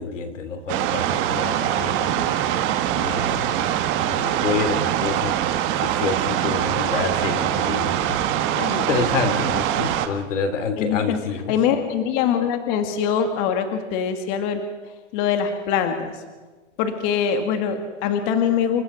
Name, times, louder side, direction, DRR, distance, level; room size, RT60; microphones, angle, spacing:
voice 1, 0.0-2.3 2.9-3.7 4.0-11.6, left 5 dB, 85° left, 8 dB, 3.2 m, -28 dB
sound 1, 0.7-10.1, right 11 dB, 35° right, 1.6 m, -23 dB
voice 2, 10.8-11.2 11.5-14.6 15.1-16.2 16.8-18.8, left 7 dB, 40° left, 7 dB, 2.0 m, -23 dB
29.0 x 15.0 x 6.3 m, 1.3 s
supercardioid pair, 150°, 36 cm